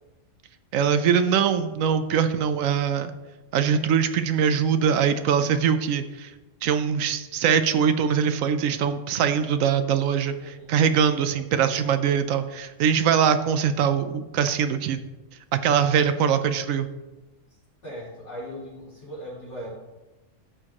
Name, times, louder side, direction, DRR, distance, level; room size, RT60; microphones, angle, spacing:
voice 1, 0.7-3.1 3.5-6.3 6.6-15.0 15.5-16.9, right 7 dB, 90° right, 10 dB, 1.0 m, -22 dB
voice 2, 10.4-10.8 17.8-19.7, equal, 60° left, -7 dB, 3.9 m, -38 dB
14.0 x 6.4 x 2.9 m, 1.1 s
omnidirectional pair, 1.3 m